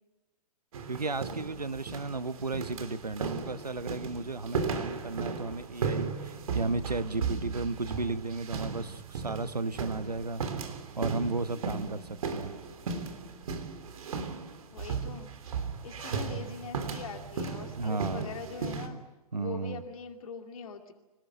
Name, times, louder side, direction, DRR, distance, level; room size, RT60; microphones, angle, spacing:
sound 1, 0.7-18.9, right 5 dB, 65° right, 3.3 m, -36 dB
voice 1, 0.9-10.6 10.9-12.5 17.8-18.3 19.3-19.8, right 3 dB, 90° right, 1.0 m, -34 dB
voice 2, 14.7-15.3 15.8-19.0 19.4-20.9, left 5 dB, 60° left, 2.5 m, -42 dB
26.5 x 19.0 x 8.1 m
figure-of-eight pair, 110°, 20 cm